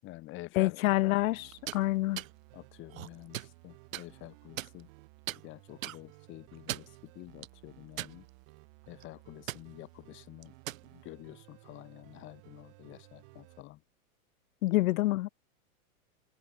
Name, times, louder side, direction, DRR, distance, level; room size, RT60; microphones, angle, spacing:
voice 1, 0.0-0.9 2.5-4.9 5.3-8.3 8.9-10.5 10.8-13.8, left 18 dB, 25° left, 7.6 m, -49 dB
voice 2, 0.6-2.2 14.6-15.3, left 18 dB, 75° left, 0.5 m, -27 dB
sound 1, 0.9-13.6, right 29 dB, 40° right, 4.6 m, -57 dB
sound 2, 1.5-1.8 2.2-2.3 2.9-3.5 3.9-4.1 4.6-5.0 5.3-5.4 5.8-6.0 6.5-7.0 7.4-7.5 8.0-8.5 8.8-9.0 9.5-9.6 10.4-10.8, right 13 dB, 65° right, 2.8 m, -38 dB
supercardioid pair, 170°, 43 cm